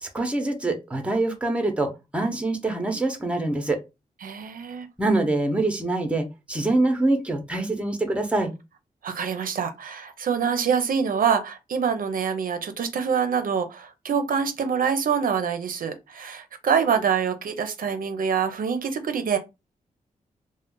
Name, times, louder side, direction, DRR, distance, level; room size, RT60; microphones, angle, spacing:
voice 1, 0.0-3.8 5.0-8.5, right 2 dB, 10° right, 0.7 m, -25 dB
voice 2, 4.2-4.9 9.0-19.4, right 7 dB, 70° right, 0.5 m, -25 dB
2.4 x 2.1 x 3.7 m
wide cardioid pair, 105°, 15 cm